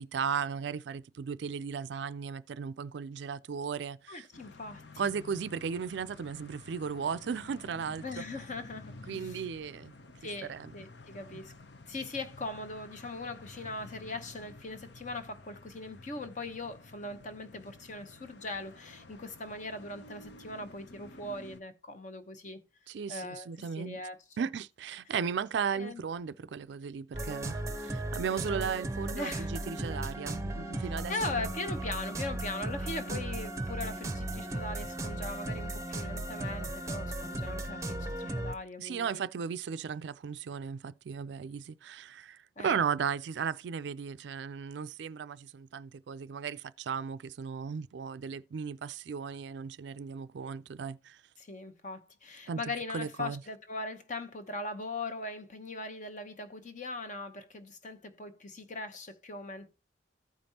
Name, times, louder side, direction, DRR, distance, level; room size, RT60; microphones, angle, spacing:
voice 1, 0.0-4.3 5.0-8.0 9.1-9.9 10.4-10.7 11.3-11.4 22.9-24.0 24.4-31.5 32.8-33.2 38.8-51.2 52.5-52.6 52.9-53.4, right 6 dB, 70° right, 0.4 m, -36 dB
voice 2, 4.1-5.1 8.0-9.4 10.2-11.5 11.9-22.6 23.1-23.5 23.8-24.5 25.7-26.0 29.1-29.5 31.1-39.2 42.6-42.8 51.4-59.7, left 2 dB, 40° left, 0.9 m, -40 dB
sound 1, 4.3-21.6, left 3 dB, 65° left, 0.7 m, -52 dB
sound 2, 27.1-38.5, right 1 dB, 15° right, 0.7 m, -36 dB
15.0 x 5.2 x 2.8 m
head